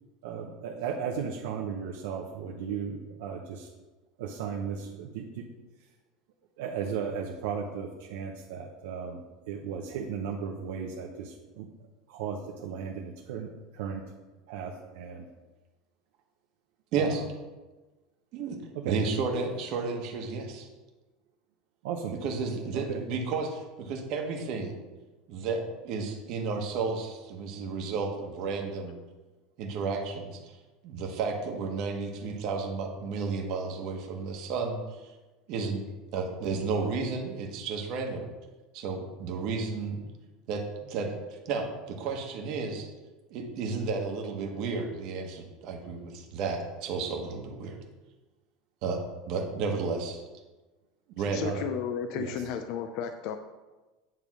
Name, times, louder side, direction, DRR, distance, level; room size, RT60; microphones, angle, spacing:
voice 1, 0.2-3.7 4.2-5.5 6.6-11.7 12.1-14.0 14.5-15.2 17.0-17.3 18.7-19.0 21.8-22.2 22.7-23.0 51.4-51.7 52.1-52.5, right 7 dB, 75° right, 0 dB, 0.8 m, -36 dB
voice 2, 16.9-17.2 18.3-18.6 18.8-20.7 22.2-24.7 25.3-28.9 29.6-30.5 30.8-35.0 35.5-35.8 36.1-38.2 38.7-40.0 40.5-42.9 43.3-47.8 48.8-49.0 49.3-50.2 51.1-51.5, right 4 dB, 45° right, 2 dB, 1.2 m, -32 dB
voice 3, 51.2-53.4, left 7 dB, 45° left, 7 dB, 0.4 m, -33 dB
9.2 x 3.5 x 6.1 m, 1.2 s
supercardioid pair, 175°, 0 cm